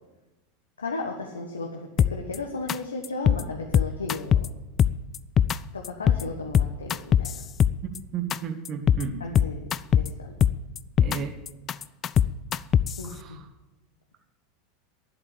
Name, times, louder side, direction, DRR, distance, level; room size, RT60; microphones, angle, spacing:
voice 1, 0.8-4.4 5.7-7.4 9.2-9.7 10.0-10.3 13.0-13.4, left 3 dB, 75° left, 1 dB, 1.4 m, -35 dB
sound 1, 2.0-2.4 2.7-2.8 3.0-3.4 3.7-4.5 4.8-5.6 5.8-6.2 6.5-8.0 8.3-8.4 8.6-9.0 9.3-10.1 10.4-11.2 11.5-13.0, left 9 dB, 30° left, 0.4 m, -21 dB
voice 2, 8.1-9.2 11.0-11.3 13.0-13.4, right 7 dB, 35° right, 7 dB, 1.7 m, -33 dB
11.0 x 8.3 x 10.0 m, 1.1 s
figure-of-eight pair, 85°, 0 cm